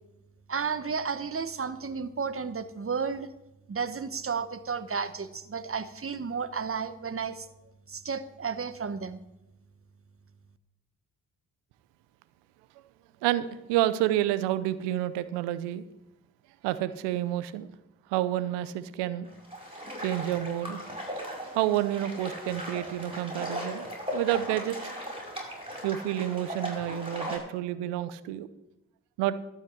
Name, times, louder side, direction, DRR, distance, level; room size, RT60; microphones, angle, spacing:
voice 1, 0.5-3.3 3.7-7.5 7.9-9.2, right 5 dB, 35° right, 13 dB, 1.1 m, -32 dB
voice 2, 13.2-15.8 16.6-17.7 18.1-19.3 20.0-20.8 21.5-24.9 25.8-28.5 29.2-29.4, right 13 dB, 90° right, 14 dB, 0.7 m, -29 dB
sound 1, 19.2-27.4, equal, 15° right, 5.5 m, -37 dB
12.5 x 5.6 x 8.5 m, 0.94 s
hypercardioid pair, 45°, 41 cm